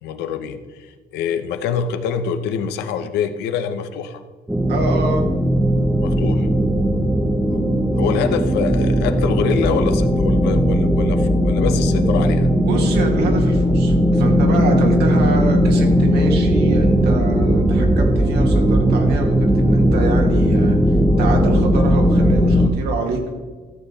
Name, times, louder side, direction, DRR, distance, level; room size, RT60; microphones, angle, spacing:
voice 1, 0.0-4.2 6.0-6.5 7.5-7.6 8.0-12.5, left 7 dB, 85° left, 9 dB, 0.9 m, -25 dB
sound 1, 4.5-22.7, equal, 5° right, 0.9 m, -17 dB
voice 2, 4.7-5.3 12.7-23.3, right 3 dB, 75° right, 2 dB, 2.1 m, -26 dB
14.0 x 7.0 x 4.2 m, 1.4 s
cardioid pair, 110°, 17 cm